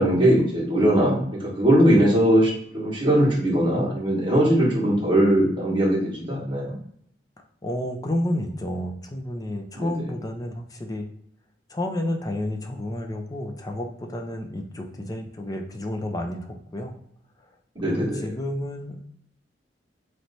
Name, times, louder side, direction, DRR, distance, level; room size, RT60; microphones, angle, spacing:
voice 1, 0.0-6.8 9.7-10.1 17.7-18.3, right 1 dB, 25° right, -4 dB, 1.5 m, -20 dB
voice 2, 7.6-11.1 11.7-16.9 17.8-19.0, left 1 dB, 20° left, 2 dB, 0.5 m, -30 dB
3.2 x 3.1 x 4.1 m, 0.68 s
head